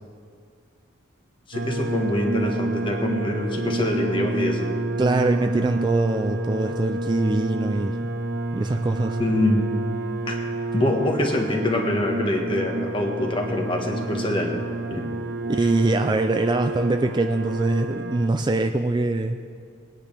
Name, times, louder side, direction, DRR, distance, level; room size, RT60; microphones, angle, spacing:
voice 1, 1.5-4.7 9.2-9.6 10.2-10.4 10.7-14.6 14.9-15.1, left 1 dB, 25° left, 2 dB, 1.3 m, -24 dB
sound 1, 1.5-18.3, right 2 dB, 70° right, 0.6 m, -29 dB
voice 2, 5.0-8.0 8.5-9.2 15.5-19.4, right 2 dB, 20° right, 6 dB, 0.3 m, -23 dB
20.0 x 9.9 x 3.4 m, 2.1 s
head